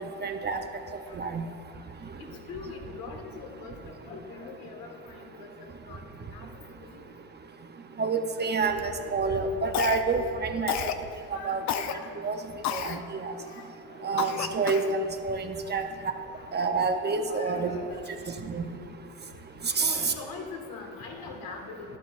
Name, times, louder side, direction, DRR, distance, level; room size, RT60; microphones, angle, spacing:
voice 1, 0.2-0.6 1.2-1.4 8.0-10.7 11.4-11.6 12.2-12.4 12.7-13.3 14.0-15.0 15.2-15.8 16.5-17.7 18.5-18.6 19.8-20.1, right 4 dB, 30° right, 5 dB, 0.7 m, -28 dB
voice 2, 2.2-3.8 4.0-6.5 6.8-7.0 9.2-9.8 11.3-12.2 12.7-14.7 15.7-15.8 16.1-16.4 17.2-18.2 19.8-22.0, left 4 dB, 65° left, 2 dB, 1.8 m, -43 dB
Cough, 9.7-10.3 10.7-11.0 11.7-11.9 12.6-13.0 13.5-13.6 14.2-15.0, left 9 dB, 50° left, 0.6 m, -30 dB
12.5 x 12.0 x 2.5 m, 2.7 s
supercardioid pair, 90°, 37 cm